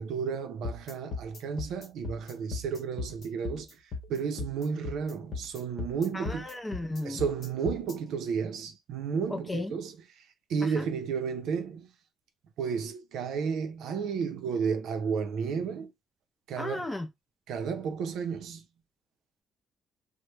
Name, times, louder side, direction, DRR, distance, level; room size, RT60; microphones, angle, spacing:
voice 1, 0.0-6.5 7.0-11.9 12.6-15.9 16.5-16.9 17.5-18.6, right 6 dB, 70° right, 0.5 m, -32 dB
sound 1, 0.6-7.9, left 4 dB, 40° left, 1.0 m, -38 dB
voice 2, 6.1-7.2 9.3-9.7 10.8-10.9 16.6-17.1, left 1 dB, 10° left, 0.4 m, -34 dB
2.9 x 2.0 x 3.2 m
cardioid pair, 175°, 0 cm